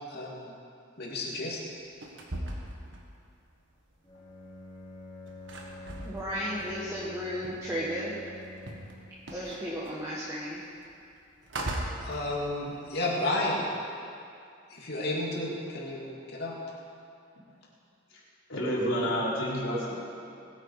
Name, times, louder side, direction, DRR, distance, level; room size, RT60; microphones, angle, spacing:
voice 1, 0.1-0.5 1.0-1.6 12.0-13.7 14.7-16.6, left 1 dB, 55° left, -4 dB, 2.8 m, -32 dB
sound 1, 1.7-3.8 4.1-8.0 8.3-13.0, right 1 dB, 70° right, 1.7 m, -40 dB
Bowed string instrument, 4.0-9.1, left 1 dB, 25° left, 3.6 m, -46 dB
voice 2, 6.0-8.1 9.3-10.6, equal, 15° right, -7 dB, 1.6 m, -34 dB
voice 3, 18.5-20.0, equal, 70° left, -6 dB, 4.1 m, -29 dB
20.0 x 9.2 x 4.9 m, 2.5 s
head